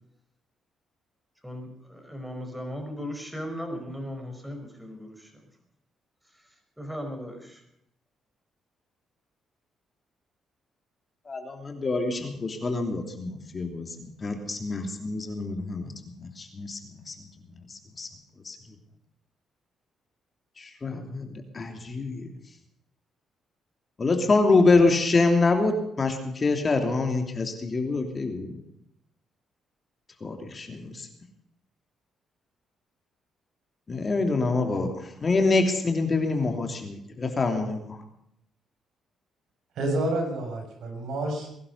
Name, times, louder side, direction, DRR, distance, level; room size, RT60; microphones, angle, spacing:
voice 1, 1.4-5.3 6.3-7.6, equal, 5° right, 4 dB, 5.0 m, -37 dB
voice 2, 11.3-15.9 16.2-17.3 17.7-18.1 18.4-18.6 20.6-22.3 24.0-28.6 30.2-31.1 33.9-38.0, left 3 dB, 35° left, 4 dB, 3.0 m, -26 dB
voice 3, 39.8-41.5, right 1 dB, 75° right, 2 dB, 7.1 m, -29 dB
21.5 x 11.5 x 5.6 m, 0.76 s
cardioid pair, 90°, 0 cm